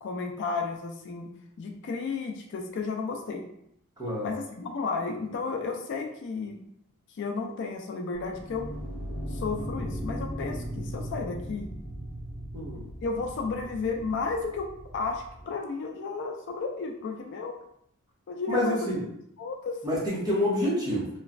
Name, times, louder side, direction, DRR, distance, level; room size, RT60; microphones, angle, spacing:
voice 1, 0.0-1.3 1.6-3.4 4.2-6.6 7.1-8.7 9.3-11.7 13.0-14.7 14.9-17.6 18.3-18.8 19.4-19.8, left 4 dB, 55° left, 2 dB, 0.3 m, -33 dB
voice 2, 4.0-4.3 12.5-12.8 18.5-19.0 19.8-21.1, left 1 dB, 15° right, -6 dB, 0.8 m, -27 dB
sound 1, 8.2-15.4, equal, 70° left, 1.0 m, -38 dB
3.0 x 2.1 x 2.4 m, 0.73 s
head